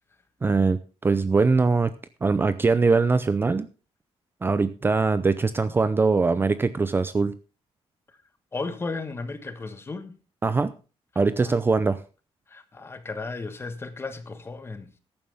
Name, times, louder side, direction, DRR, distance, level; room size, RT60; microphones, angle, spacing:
voice 1, 0.4-1.9 2.2-3.7 4.4-7.3 10.4-10.7 11.2-12.0, right 4 dB, 20° right, 0.6 m, -22 dB
voice 2, 8.5-10.2 11.4-11.5 12.5-14.9, left 3 dB, 25° left, 1.4 m, -34 dB
14.0 x 11.5 x 3.5 m
cardioid pair, 155°, 11 cm